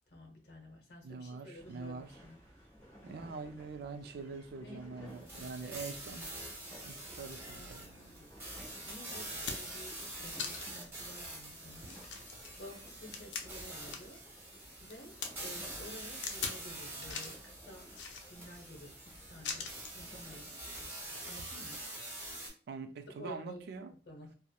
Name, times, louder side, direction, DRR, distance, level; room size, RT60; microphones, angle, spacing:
voice 1, 0.1-2.4 4.6-5.8 7.4-14.2 14.8-17.9 18.2-20.6 21.2-21.8 23.1-23.7 24.0-24.3, equal, 65° left, 0.8 m, -52 dB
voice 2, 1.0-2.1 3.0-6.3 6.8-7.9 22.7-23.9, right 4 dB, 60° right, 0.3 m, -44 dB
sound 1, 1.5-20.5, equal, 15° left, 1.2 m, -57 dB
sound 2, 5.3-22.5, right 1 dB, 15° right, 0.9 m, -46 dB
sound 3, 8.7-8.8 9.2-9.8 10.4-10.9 11.3-11.4 11.8-14.2 14.5-15.3 16.2-16.6 17.0-17.4 17.9-18.6 19.4-20.0 21.1-21.2, left 5 dB, 90° left, 0.4 m, -41 dB
2.9 x 2.0 x 2.2 m
head